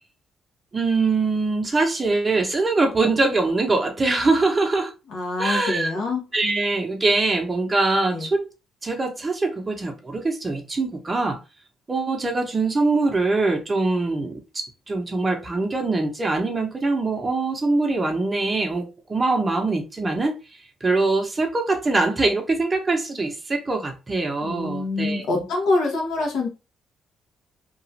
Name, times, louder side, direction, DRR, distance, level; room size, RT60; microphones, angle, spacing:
voice 1, 0.7-4.9 5.4-6.0 6.3-8.5 8.8-11.4 11.9-20.3 20.8-25.4, right 3 dB, 25° right, 0.7 m, -23 dB
voice 2, 5.1-6.2 8.1-8.3 24.4-26.5, left 3 dB, 80° left, 1.1 m, -25 dB
2.9 x 2.4 x 2.7 m
cardioid pair, 90°, 0 cm